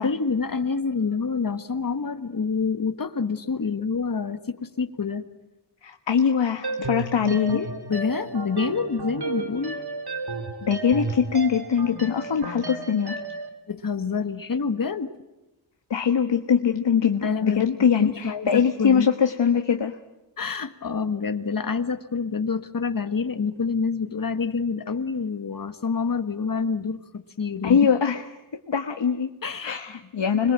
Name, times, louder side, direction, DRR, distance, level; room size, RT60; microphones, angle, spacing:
voice 1, 0.0-5.2 7.3-9.8 13.7-15.1 17.2-17.7 18.0-19.1 20.4-27.8 29.4-29.8, left 5 dB, 50° left, 10 dB, 1.5 m, -27 dB
voice 2, 5.8-7.6 10.7-13.2 15.9-19.9 27.6-28.2 28.7-29.3 29.6-30.5, left 7 dB, 75° left, 7 dB, 1.3 m, -22 dB
sound 1, 6.6-13.5, right 3 dB, 60° right, 2.9 m, -33 dB
26.5 x 22.0 x 7.6 m, 1.0 s
wide cardioid pair, 100°, 44 cm